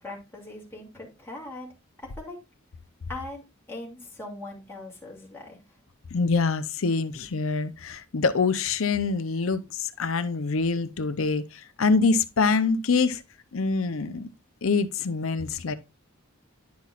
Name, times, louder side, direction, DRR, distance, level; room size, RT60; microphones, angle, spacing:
voice 1, 0.0-1.7 2.0-2.4 3.1-5.6, left 2 dB, 10° left, 2.5 m, -40 dB
voice 2, 6.1-13.2 13.5-14.3 14.6-15.7, left 4 dB, 80° left, 0.6 m, -25 dB
10.5 x 5.8 x 2.4 m
head